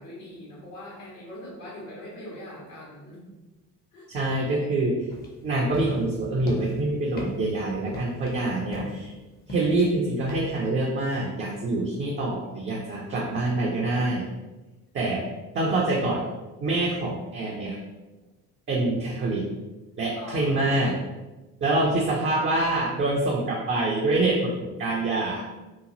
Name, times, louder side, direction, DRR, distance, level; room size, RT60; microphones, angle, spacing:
voice 1, 0.0-3.2 3.9-4.1 20.1-20.8 21.7-22.1, left 1 dB, 75° left, -5 dB, 1.4 m, -42 dB
voice 2, 4.1-5.0 5.4-9.1 9.5-14.2 14.9-15.2 15.5-16.2 16.6-17.8 18.7-19.4 20.0-21.0 21.6-25.4, right 2 dB, 25° right, -3 dB, 0.5 m, -25 dB
sound 1, 5.1-10.7, left 1 dB, 20° left, 0.6 m, -39 dB
2.9 x 2.3 x 2.6 m, 1.1 s
figure-of-eight pair, 55°, 48 cm